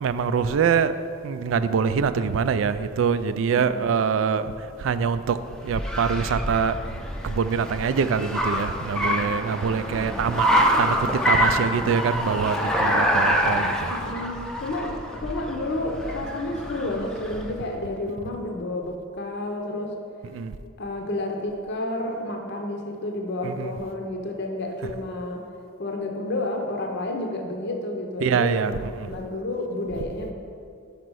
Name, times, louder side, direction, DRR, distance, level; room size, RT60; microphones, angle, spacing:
voice 1, 0.0-4.5 4.8-5.4 5.6-6.8 7.2-10.5 10.8-11.0 11.3-13.9 20.3-20.5 23.4-23.7 28.2-28.7 29.0-29.1, right 6 dB, 70° right, 12 dB, 0.3 m, -24 dB
voice 2, 3.5-3.8 9.6-10.2 13.9-19.9 20.8-25.4 25.8-30.3, left 1 dB, 60° left, 2 dB, 0.6 m, -30 dB
Car, 4.7-17.6, equal, 5° left, 0.5 m, -26 dB
5.4 x 5.1 x 6.2 m, 2.3 s
head